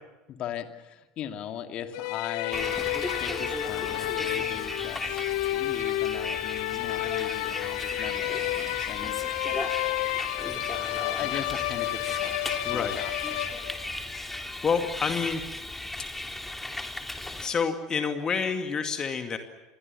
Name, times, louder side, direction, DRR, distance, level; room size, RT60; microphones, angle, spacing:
voice 1, 0.3-2.7 3.1-9.2 10.5-10.6 11.2-13.4, left 9 dB, 45° left, 6 dB, 2.4 m, -39 dB
sound 1, 1.9-14.0, left 17 dB, 60° left, 1.0 m, -31 dB
Bus, 2.5-17.5, left 2 dB, 10° left, 2.9 m, -36 dB
voice 2, 12.6-13.0 14.3-15.4 17.4-19.4, left 5 dB, 30° left, 6 dB, 2.3 m, -28 dB
29.0 x 22.5 x 7.1 m, 1.1 s
figure-of-eight pair, 70°, 2 cm